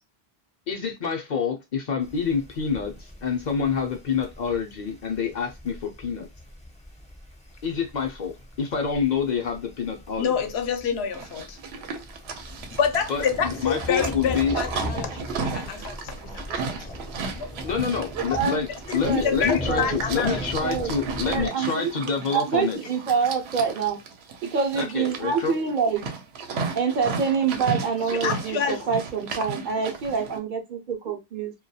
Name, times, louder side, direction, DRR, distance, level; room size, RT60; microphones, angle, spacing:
voice 1, 0.7-6.3 7.6-10.4 13.1-14.6 17.3-18.7 18.9-22.8 24.8-25.6, left 6 dB, 55° left, 0.6 m, -27 dB
sound 1, 2.0-21.5, left 1 dB, 10° left, 0.5 m, -39 dB
voice 2, 10.2-11.6 12.8-16.7 17.4-17.5 18.3-18.4 18.9-20.5 28.1-28.9, left 7 dB, 80° left, 0.8 m, -28 dB
Livestock farm animals working animals, 11.1-30.4, right 5 dB, 85° right, 0.8 m, -34 dB
voice 3, 19.0-19.4 19.7-20.0 20.6-20.9 21.3-21.9 22.3-24.0 24.4-26.1 26.8-31.5, right 6 dB, 60° right, 0.6 m, -26 dB
2.2 x 2.2 x 2.6 m
omnidirectional pair, 1.1 m